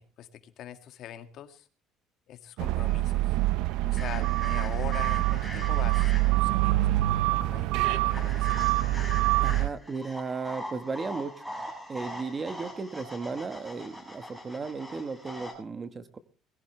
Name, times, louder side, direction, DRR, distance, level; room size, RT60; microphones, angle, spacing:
voice 1, 0.0-1.7 2.3-3.4 3.8-7.0 7.5-8.6, left 10 dB, 60° left, 8 dB, 2.0 m, -42 dB
sound 1, 2.6-9.7, right 17 dB, 80° right, 0.6 m, -25 dB
sound 2, 4.0-6.5 8.1-15.5, left 1 dB, 5° right, 7.4 m, -42 dB
voice 2, 9.4-11.5 11.9-16.2, right 4 dB, 25° right, 11 dB, 1.3 m, -35 dB
22.0 x 15.0 x 3.2 m, 0.38 s
cardioid pair, 130°, 0 cm